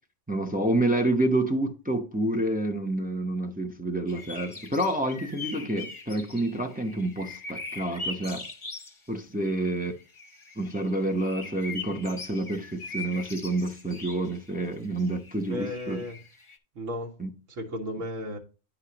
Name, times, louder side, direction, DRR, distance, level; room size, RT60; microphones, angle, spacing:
voice 1, 0.3-8.4 9.1-9.9 10.6-16.0 17.2-17.3, right 1 dB, 10° right, 0.4 m, -28 dB
sound 1, 4.1-9.0 9.9-16.6, left 3 dB, 25° left, 0.9 m, -41 dB
voice 2, 9.4-9.7 15.5-16.2 16.7-17.2 17.5-18.4, left 1 dB, 80° right, 1.6 m, -35 dB
9.9 x 5.6 x 2.9 m
omnidirectional pair, 1.3 m